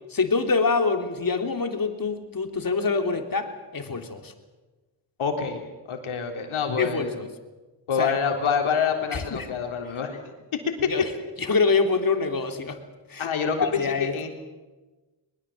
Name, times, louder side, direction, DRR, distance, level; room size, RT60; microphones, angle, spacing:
voice 1, 0.1-4.3 6.8-7.3 8.0-8.1 9.1-9.5 10.9-11.1 11.4-12.8 13.1-13.3 13.6-14.2, left 4 dB, 45° left, 6 dB, 3.2 m, -25 dB
voice 2, 5.2-5.6 5.9-7.2 7.9-10.3 10.8-10.9 13.2-14.3, left 6 dB, 80° left, 3 dB, 3.8 m, -26 dB
22.0 x 21.0 x 7.5 m, 1.2 s
cardioid pair, 55°, 49 cm